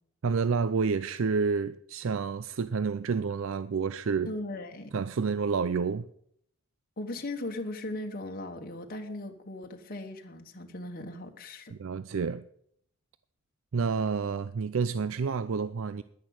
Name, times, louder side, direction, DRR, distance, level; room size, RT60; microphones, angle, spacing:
voice 1, 0.2-4.3 4.9-6.1 11.7-12.4 13.7-16.0, right 5 dB, 60° right, 0.4 m, -29 dB
voice 2, 4.2-4.9 7.0-11.7, left 2 dB, 40° left, 1.2 m, -38 dB
10.5 x 10.5 x 7.8 m
head